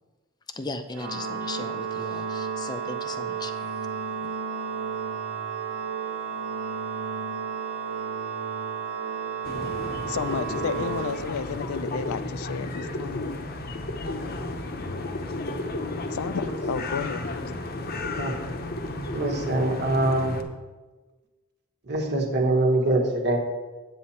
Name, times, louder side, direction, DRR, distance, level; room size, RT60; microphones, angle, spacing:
voice 1, 0.5-3.8, left 2 dB, 20° left, 8 dB, 0.5 m, -37 dB
Organ, 0.9-11.8, right 6 dB, 75° right, 1.0 m, -32 dB
sound 1, 9.4-20.4, left 2 dB, 45° left, 0.8 m, -33 dB
voice 2, 10.1-13.3 16.1-17.2, left 6 dB, 90° left, 14 dB, 0.4 m, -32 dB
voice 3, 18.2-18.5 19.1-20.4 21.9-23.4, right 2 dB, 55° right, 2 dB, 1.3 m, -24 dB
8.6 x 7.6 x 4.3 m, 1.3 s
head